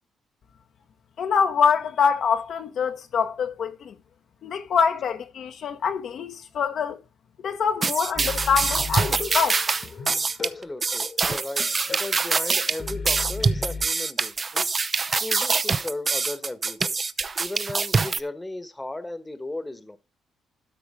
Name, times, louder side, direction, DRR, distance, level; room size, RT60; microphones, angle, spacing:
voice 1, 1.2-3.9 4.4-7.0 7.4-9.6, left 6 dB, 65° left, 1.1 m, -25 dB
sound 1, 7.8-18.2, right 4 dB, 35° right, 0.6 m, -25 dB
sound 2, 8.1-13.9, left 4 dB, 40° left, 1.3 m, -36 dB
voice 2, 10.4-14.7 15.2-16.9 17.4-20.0, left 2 dB, 15° left, 1.2 m, -36 dB
12.5 x 4.8 x 4.9 m
cardioid pair, 90°, 0 cm